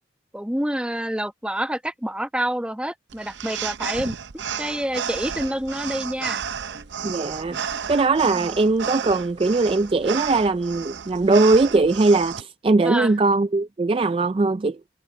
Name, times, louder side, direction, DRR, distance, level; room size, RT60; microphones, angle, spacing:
voice 1, 0.3-4.1 4.6-6.4 8.4-8.6 12.8-13.1, right 1 dB, 5° right, 0.9 m, -27 dB
sound 1, 3.1-12.4, right 7 dB, 70° right, 0.6 m, -32 dB
sound 2, 4.4-9.7, right 1 dB, 45° right, 6.8 m, -53 dB
voice 2, 7.0-7.6 7.9-14.8, right 3 dB, 30° right, 0.3 m, -20 dB
head